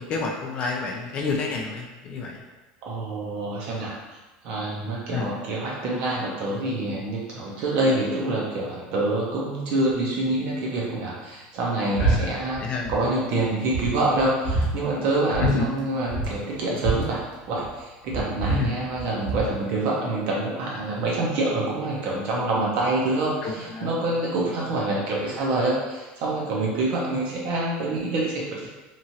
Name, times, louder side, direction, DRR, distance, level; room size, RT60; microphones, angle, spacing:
voice 1, 0.0-2.4 5.1-5.3 12.0-12.3 12.6-12.9 15.4-15.7 18.5-18.7 23.4-23.9, left 4 dB, 30° left, 1 dB, 0.3 m, -28 dB
voice 2, 2.8-3.9 4.4-12.6 12.9-17.2 17.5-28.7, right 2 dB, 50° right, -4 dB, 0.6 m, -26 dB
sound 1, 12.0-12.2 12.4-13.0 13.4-13.5 13.7-14.7 15.3-15.5 15.8-15.9 16.1-17.7 18.1-19.5, right 2 dB, 50° left, 0.8 m, -26 dB
2.9 x 2.4 x 2.8 m, 1.2 s
cardioid pair, 170°, 4 cm